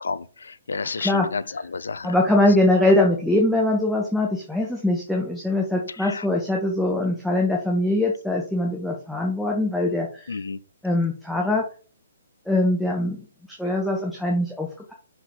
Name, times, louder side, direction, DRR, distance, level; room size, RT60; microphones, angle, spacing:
voice 1, 0.0-2.1 6.0-6.2 10.3-10.6, left 4 dB, 70° left, 0.5 m, -31 dB
voice 2, 2.0-10.3 10.8-11.6 12.5-13.2 13.6-14.9, left 1 dB, ahead, 1.0 m, -22 dB
5.7 x 4.7 x 3.6 m
figure-of-eight pair, 130°, 0 cm